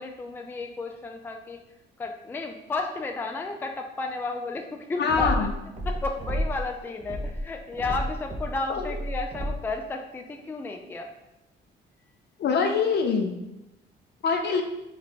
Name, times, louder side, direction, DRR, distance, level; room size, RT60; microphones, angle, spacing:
voice 1, 0.0-1.6 2.0-5.5 5.9-11.1, left 3 dB, 10° left, 3 dB, 0.3 m, -33 dB
voice 2, 5.0-5.5 8.7-9.0 12.4-13.3 14.2-14.6, left 5 dB, 60° left, 4 dB, 0.6 m, -24 dB
sound 1, 5.1-6.7 7.0-9.8, equal, 35° right, 0.6 m, -31 dB
3.3 x 2.2 x 4.0 m, 0.93 s
cardioid pair, 90°, 20 cm